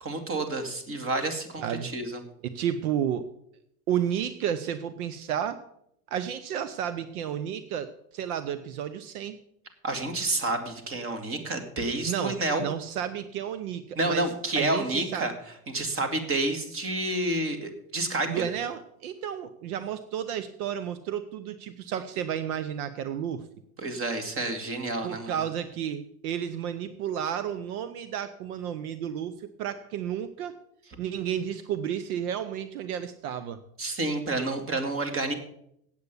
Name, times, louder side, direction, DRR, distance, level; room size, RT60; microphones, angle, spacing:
voice 1, 0.0-2.2 9.8-12.6 14.0-15.3 15.7-18.5 23.8-25.4 33.8-35.3, right 2 dB, 30° right, 7 dB, 2.2 m, -29 dB
voice 2, 1.6-1.9 2.5-3.3 3.9-5.6 6.1-9.4 12.0-14.3 14.5-15.3 18.3-23.5 25.0-30.5 31.0-33.6, right 9 dB, 75° right, 12 dB, 0.9 m, -32 dB
8.6 x 8.1 x 8.2 m, 0.75 s
hypercardioid pair, 110°, 44 cm